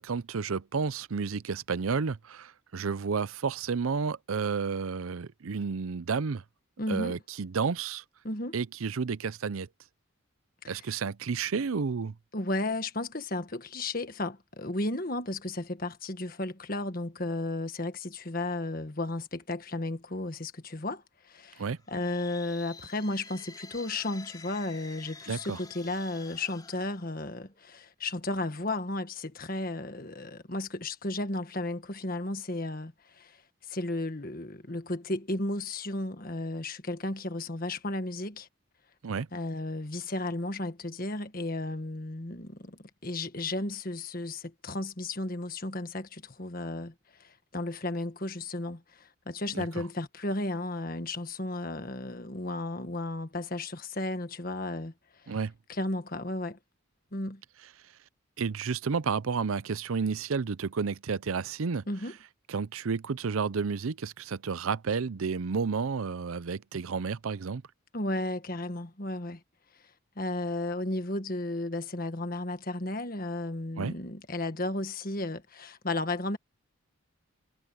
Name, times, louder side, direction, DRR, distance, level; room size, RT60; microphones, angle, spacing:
voice 1, 0.0-6.4 6.9-8.0 8.5-9.7 10.7-12.1 21.6-21.8 25.3-25.6 39.0-39.3 49.5-49.7 55.3-55.5 58.4-61.8 62.5-67.6 73.8-73.9, right 5 dB, 80° right, 0.6 m, -31 dB
voice 2, 6.8-7.2 8.2-8.5 10.6-10.8 12.3-33.4 33.7-38.5 39.3-54.9 55.2-55.4 55.7-56.6 57.1-57.4 61.9-62.1 67.9-69.4 70.2-76.4, left 2 dB, 45° left, 1.6 m, -34 dB
sound 1, 21.8-27.7, left 4 dB, 20° left, 4.0 m, -49 dB
head